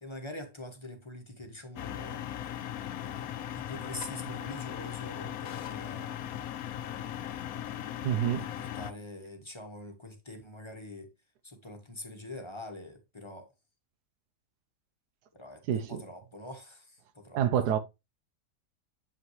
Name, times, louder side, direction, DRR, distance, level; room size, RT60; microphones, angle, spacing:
voice 1, 0.0-2.4 3.0-6.1 6.8-7.0 8.4-11.1 11.4-13.5 15.3-17.4, left 1 dB, 20° left, 1.0 m, -45 dB
sound 1, 1.8-8.9, left 11 dB, 70° left, 1.0 m, -38 dB
voice 2, 8.0-8.5 15.7-16.0 17.3-17.8, right 10 dB, 80° right, 1.2 m, -27 dB
7.4 x 5.4 x 3.1 m
omnidirectional pair, 1.7 m